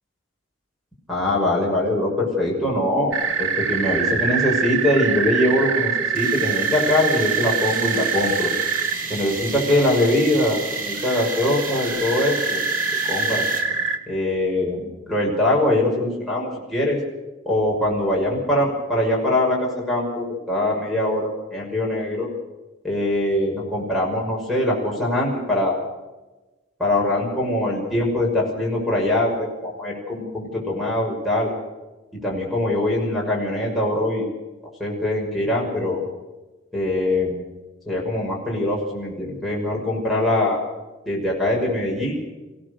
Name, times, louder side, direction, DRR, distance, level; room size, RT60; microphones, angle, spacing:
voice 1, 1.1-8.5 9.1-12.6 13.0-13.4 14.1-17.0 17.5-22.3 22.8-25.8 26.8-31.5 32.2-34.3 34.8-36.0 36.7-37.4 37.9-40.6 41.1-42.2, left 1 dB, ahead, -5 dB, 6.1 m, -22 dB
sound 1, 3.1-14.0, right 6 dB, 90° right, 1.9 m, -25 dB
sound 2, 6.1-13.9, right 4 dB, 45° right, 2.7 m, -34 dB
28.0 x 17.0 x 6.7 m, 1.1 s
head